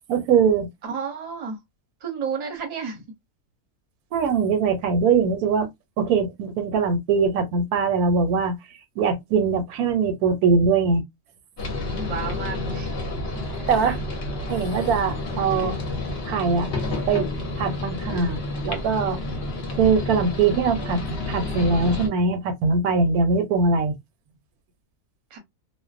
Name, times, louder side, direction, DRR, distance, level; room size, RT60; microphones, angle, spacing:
voice 1, 0.1-0.7 4.1-5.7 6.0-8.6 9.0-11.0 13.7-14.0 14.5-15.8 16.2-16.7 17.1-18.4 18.6-19.2 19.8-21.0 21.3-24.0, right 5 dB, 85° right, 1.1 m, -22 dB
voice 2, 0.8-1.6 2.0-3.1 11.6-14.0 25.3-25.4, right 6 dB, 35° right, 0.7 m, -33 dB
sound 1, 11.6-22.1, left 2 dB, 50° left, 0.8 m, -30 dB
2.5 x 2.1 x 2.3 m
omnidirectional pair, 1.6 m